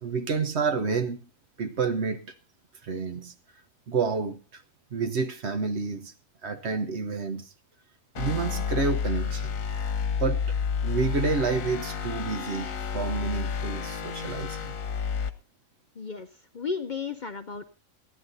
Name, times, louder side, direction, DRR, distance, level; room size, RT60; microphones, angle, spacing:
voice 1, 0.0-1.2 1.6-2.3 2.8-3.3 3.9-4.6 4.9-6.1 6.4-7.5 8.2-9.6 10.2-10.6 10.8-14.8, right 4 dB, 55° right, 1.2 m, -29 dB
sound 1, 8.2-15.3, left 6 dB, 75° left, 1.4 m, -30 dB
voice 2, 16.0-16.3 16.5-17.7, left 5 dB, 45° left, 0.7 m, -33 dB
15.0 x 10.5 x 4.0 m
omnidirectional pair, 1.4 m